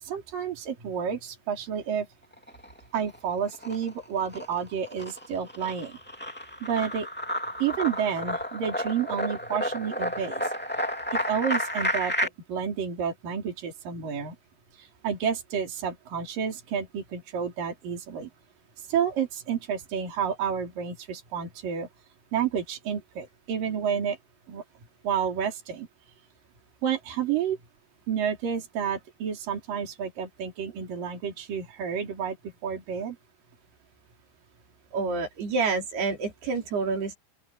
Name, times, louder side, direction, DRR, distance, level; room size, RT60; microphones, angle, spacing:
voice 1, 0.0-2.1 2.9-6.0 6.6-7.1 7.6-10.5 11.1-14.4 14.8-18.3 18.9-21.9 22.3-24.2 24.5-24.6 25.0-25.9 26.8-27.6 28.1-32.4 32.6-33.2, right 8 dB, 60° right, 5.4 m, -30 dB
sound 1, 2.3-3.2 3.5-12.3, equal, 5° left, 1.6 m, -31 dB
voice 2, 34.9-37.1, right 4 dB, 85° right, 6.5 m, -28 dB
open air
omnidirectional pair, 4.4 m